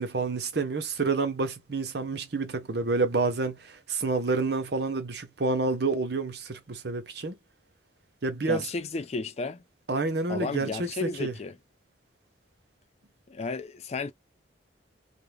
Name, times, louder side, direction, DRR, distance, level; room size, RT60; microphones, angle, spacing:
voice 1, 0.0-7.3 8.2-8.6 9.9-11.3, right 3 dB, 55° right, 0.6 m, -29 dB
voice 2, 8.5-9.6 10.3-11.5 13.3-14.1, left 3 dB, 35° left, 0.4 m, -33 dB
2.5 x 2.0 x 3.1 m
head